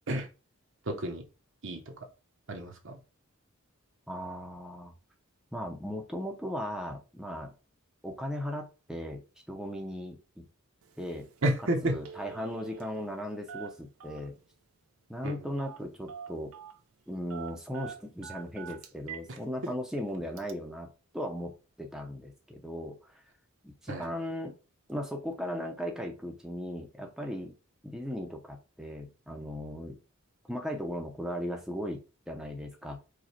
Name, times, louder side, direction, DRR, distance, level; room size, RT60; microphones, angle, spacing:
voice 1, 0.8-1.2 1.6-1.9 2.5-3.0 11.4-12.0 15.2-15.4 19.3-19.4 23.9-24.1, right 1 dB, 60° right, 0.9 m, -31 dB
voice 2, 4.1-4.9 5.5-7.5 8.0-9.2 9.5-10.5 11.0-11.3 11.8-14.4 15.1-16.5 17.1-20.9 21.1-23.2 23.6-24.6 24.9-27.5 27.8-30.0 30.5-33.0, equal, 5° right, 0.7 m, -37 dB
Telephone, 10.8-11.0 11.3-11.6 11.9-13.2 13.5-14.4 15.6-16.8 17.3-19.3 19.7-19.8 20.4-20.5, right 7 dB, 80° right, 0.6 m, -44 dB
4.9 x 2.3 x 4.3 m
head